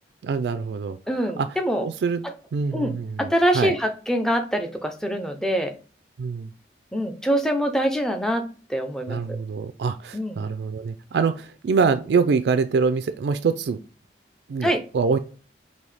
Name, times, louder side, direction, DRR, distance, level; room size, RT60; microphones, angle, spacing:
voice 1, 0.2-1.0 1.4-1.5 1.8-2.2 2.5-3.7 6.2-6.5 9.1-13.8 14.5-15.2, right 5 dB, 75° right, 10 dB, 0.3 m, -24 dB
voice 2, 1.1-1.9 2.2-2.3 2.7-5.7 6.9-8.4 8.7-9.4 10.1-10.4 14.6-14.8, equal, 5° left, 5 dB, 0.5 m, -24 dB
5.4 x 2.7 x 3.2 m, 0.37 s
head